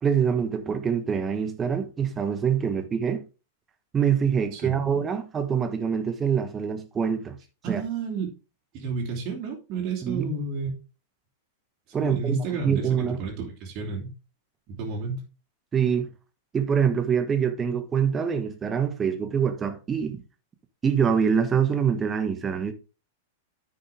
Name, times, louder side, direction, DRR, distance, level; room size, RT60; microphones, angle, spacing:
voice 1, 0.0-3.2 3.9-7.4 7.7-7.8 10.0-10.3 11.9-13.2 15.7-16.1 16.5-20.2 20.8-22.7, right 7 dB, 20° right, 1.4 m, -25 dB
voice 2, 7.6-8.3 8.7-10.7 12.0-14.1 14.7-15.2, right 4 dB, 35° right, 3.2 m, -31 dB
9.9 x 6.6 x 3.7 m
figure-of-eight pair, 95°, 0 cm